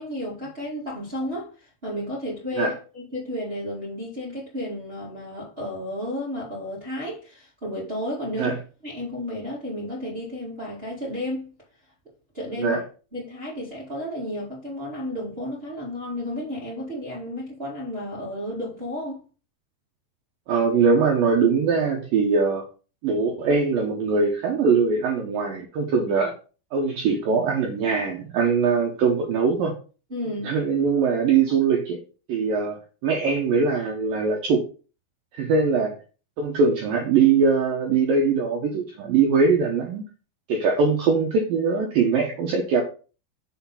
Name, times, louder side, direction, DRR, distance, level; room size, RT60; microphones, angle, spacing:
voice 1, 0.0-8.5 8.8-11.5 12.3-12.8 13.1-19.2 30.1-30.5, left 1 dB, 65° right, 0.5 m, -32 dB
voice 2, 20.5-22.6 23.0-26.3 26.7-29.7 30.4-32.0 32.3-32.8 33.0-34.6 35.3-36.0 36.4-40.0 40.5-42.8, right 5 dB, 85° right, 2.0 m, -22 dB
6.8 x 4.1 x 5.6 m
omnidirectional pair, 5.5 m